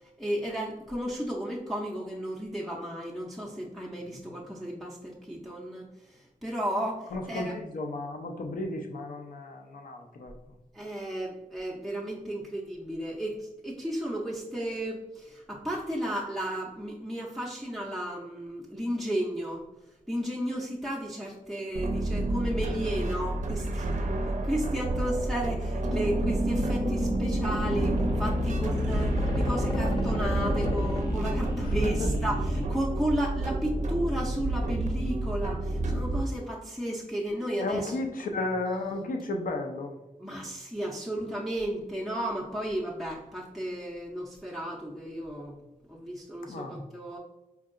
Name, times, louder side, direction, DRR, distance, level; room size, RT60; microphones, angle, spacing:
voice 1, 0.0-7.5 10.7-19.6 20.1-23.9 24.4-38.0 40.2-45.6 45.9-47.2, equal, ahead, -4 dB, 0.4 m, -33 dB
voice 2, 7.1-10.3 31.6-32.1 37.6-40.0 46.5-46.8, left 2 dB, 75° left, 3 dB, 0.5 m, -34 dB
sound 1, 21.7-36.2, right 2 dB, 55° right, 0.5 m, -30 dB
sound 2, 25.8-32.7, left 1 dB, 35° left, 0.7 m, -30 dB
4.5 x 2.7 x 2.4 m, 1.0 s
wide cardioid pair, 125°, 14 cm